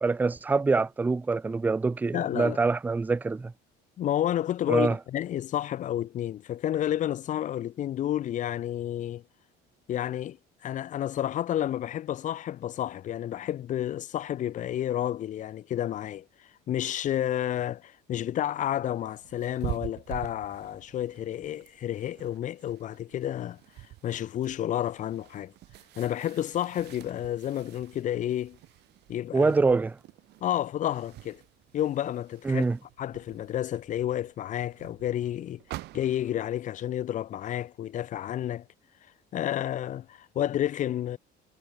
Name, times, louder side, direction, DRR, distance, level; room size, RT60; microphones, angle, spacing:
voice 1, 0.0-3.5 4.7-5.0 29.3-30.0 32.4-32.8, right 4 dB, 10° right, 0.4 m, -25 dB
voice 2, 2.1-2.6 4.0-9.2 9.9-10.4 10.6-16.2 16.7-23.6 24.0-25.5 26.0-28.6 29.1-29.5 30.4-31.4 31.7-32.7 33.0-35.6 35.9-38.6 39.3-41.2, left 11 dB, 40° left, 1.2 m, -30 dB
sound 1, 18.7-36.4, right 17 dB, 60° right, 1.9 m, -46 dB
cardioid pair, 165°, 19 cm